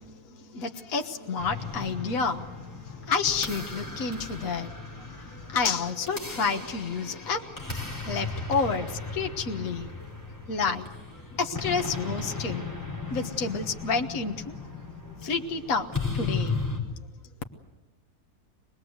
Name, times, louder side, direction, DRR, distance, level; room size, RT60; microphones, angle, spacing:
voice 1, 0.0-2.5 2.8-9.9 10.5-10.9 11.3-12.6 13.1-14.5 15.2-15.9 16.1-16.6, left 5 dB, 65° left, 4 dB, 1.8 m, -30 dB
sound 1, 1.4-16.8, left 4 dB, 10° left, 4.7 m, -36 dB
25.0 x 20.0 x 8.0 m, 1.1 s
omnidirectional pair, 1.6 m